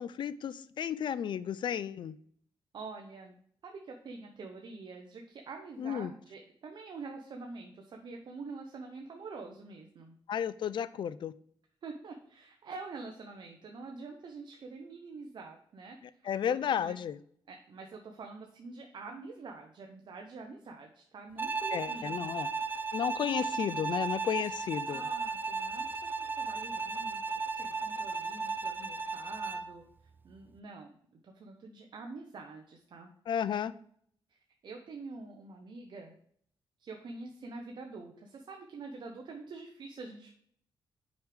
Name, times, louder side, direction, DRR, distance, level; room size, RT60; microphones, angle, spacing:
voice 1, 0.0-2.2 5.8-6.1 10.3-11.3 16.3-17.2 21.7-22.5 22.9-25.0 33.3-33.7, left 8 dB, 60° left, 17 dB, 0.4 m, -33 dB
voice 2, 2.7-3.3 3.6-10.1 11.8-16.9 17.5-22.5 24.9-26.1 26.4-27.2 27.5-29.8 30.2-33.1 34.3-36.1 36.8-40.3, right 3 dB, 60° right, 2 dB, 0.8 m, -46 dB
Bowed string instrument, 21.4-29.7, right 4 dB, 20° right, 0.4 m, -35 dB
6.3 x 4.9 x 3.4 m, 0.63 s
cardioid pair, 105°, 9 cm